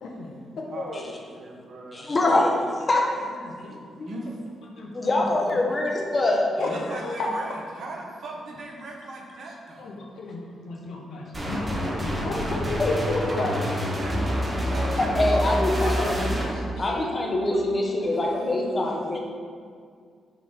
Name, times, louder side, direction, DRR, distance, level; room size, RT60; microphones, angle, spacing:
voice 1, 0.0-1.1 3.4-4.1 4.7-5.2 6.6-7.3 9.8-13.7 14.4-15.1 15.8-17.1 17.8-18.0 18.4-18.5 18.8-18.9, left 3 dB, 70° left, 0 dB, 1.0 m, -33 dB
voice 2, 0.7-2.1 4.0-4.6 6.6-10.0 12.5-13.7 14.0-16.3 18.1-18.5, right 2 dB, 65° right, -1 dB, 1.1 m, -39 dB
voice 3, 1.9-2.6 2.9-3.4 4.9-6.5 12.8-12.9 15.0-16.2 16.8-19.2, left 2 dB, 35° left, 0 dB, 1.3 m, -24 dB
sound 1, 11.3-16.5, equal, 25° right, 1.4 m, -27 dB
6.1 x 3.2 x 5.6 m, 2.1 s
supercardioid pair, 50°, 0 cm